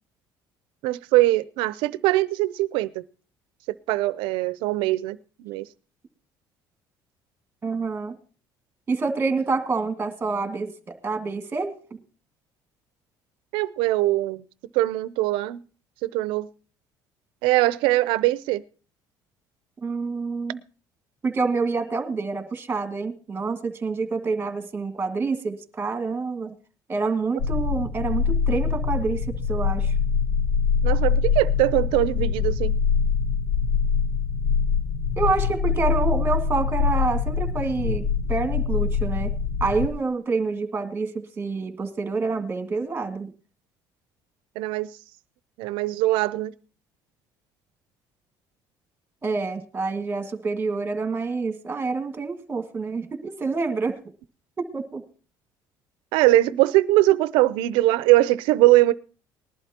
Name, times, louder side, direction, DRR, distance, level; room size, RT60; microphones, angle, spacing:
voice 1, 0.8-3.0 3.9-5.7 13.5-14.4 14.7-15.6 16.0-16.5 17.4-18.6 30.8-32.7 44.6-44.9 45.6-46.5 56.1-58.9, right 17 dB, 85° right, 0.6 m, -21 dB
voice 2, 7.6-8.2 8.9-11.8 19.8-20.6 21.2-26.6 26.9-29.9 35.2-39.3 39.6-43.3 49.2-54.0 54.6-55.0, right 4 dB, 25° right, 1.9 m, -27 dB
sound 1, 27.4-39.9, left 6 dB, 90° left, 1.1 m, -24 dB
19.5 x 11.5 x 2.9 m
cardioid pair, 120°, 8 cm